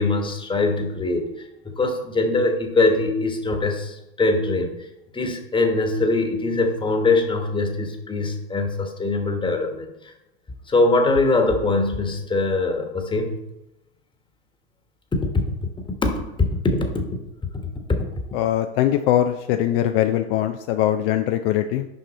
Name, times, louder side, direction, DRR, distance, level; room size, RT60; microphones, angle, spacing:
voice 1, 0.0-4.7 5.1-10.1 10.7-13.4 15.2-15.5 16.0-17.1 17.9-18.0, left 3 dB, 15° left, 4 dB, 1.3 m, -22 dB
voice 2, 18.3-21.9, left 12 dB, 55° left, 7 dB, 0.5 m, -21 dB
6.4 x 5.4 x 4.2 m, 0.92 s
hypercardioid pair, 90°, 33 cm